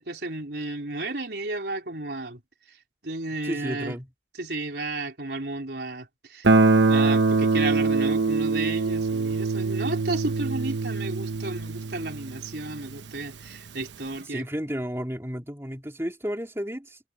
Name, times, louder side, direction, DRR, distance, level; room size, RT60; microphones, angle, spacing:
voice 1, 0.0-2.4 3.0-4.0 4.4-6.5 6.9-14.5, right 2 dB, 70° right, 4.0 m, -33 dB
voice 2, 3.4-4.1 14.2-17.0, equal, 15° right, 2.8 m, -32 dB
Guitar, 6.4-13.2, right 3 dB, 85° right, 1.1 m, -23 dB
head